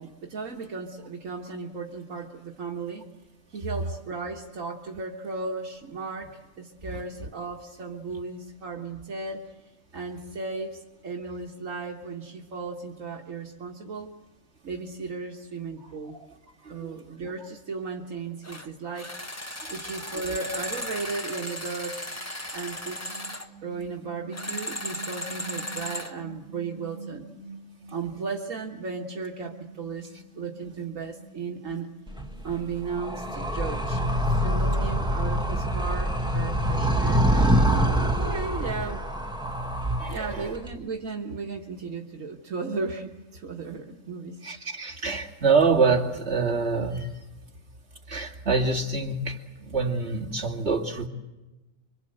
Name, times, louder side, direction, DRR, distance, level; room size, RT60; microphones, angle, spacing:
voice 1, 0.0-3.1 3.5-9.5 9.9-14.1 14.6-16.2 16.7-22.3 22.5-23.2 23.6-27.3 27.9-30.1 30.4-31.9 32.4-34.0 34.3-37.6 38.2-39.0 40.1-44.4, right 4 dB, 80° right, 0 dB, 1.9 m, -35 dB
sound 1, 18.4-18.7 19.0-23.5 24.3-26.1, left 1 dB, 10° left, 1.3 m, -36 dB
sound 2, 22.9-28.2 28.5-34.8, right 3 dB, 90° left, 4.2 m, -46 dB
Animal, 32.1-40.7, equal, 5° right, 1.7 m, -25 dB
voice 2, 40.0-40.5 44.4-47.2 48.1-51.1, right 4 dB, 55° right, -1 dB, 2.7 m, -26 dB
26.5 x 25.0 x 7.9 m, 1.1 s
omnidirectional pair, 1.4 m